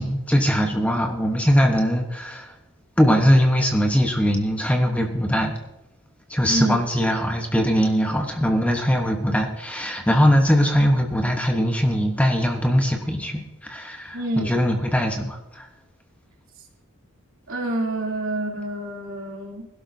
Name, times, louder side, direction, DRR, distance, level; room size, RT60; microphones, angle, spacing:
voice 1, 0.0-2.5 3.0-5.5 6.3-15.7, equal, 5° left, 3 dB, 1.0 m, -21 dB
voice 2, 6.5-6.8 14.1-14.6 17.5-19.7, right 1 dB, 70° right, -1 dB, 2.8 m, -27 dB
21.0 x 12.0 x 2.7 m, 0.94 s
head